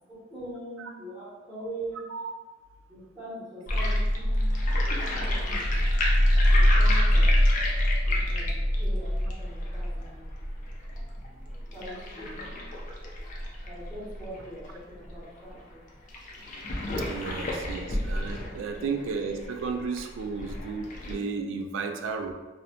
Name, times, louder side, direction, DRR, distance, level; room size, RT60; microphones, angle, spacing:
voice 1, 0.1-2.1 2.9-4.6 5.5-5.6 6.5-7.3 8.1-10.3 11.7-12.5 13.6-15.8 17.3-17.5 17.8-18.0 18.4-19.0 19.3-19.4 20.9-21.0, right 1 dB, 5° left, -10 dB, 0.7 m, -42 dB
sound 1, 3.7-14.7 15.1-15.2 15.4-15.5 16.1-21.1, left 1 dB, 40° left, 0.4 m, -25 dB
voice 2, 17.1-22.3, right 4 dB, 90° right, 6 dB, 0.3 m, -33 dB
2.5 x 2.0 x 2.8 m, 1.2 s
head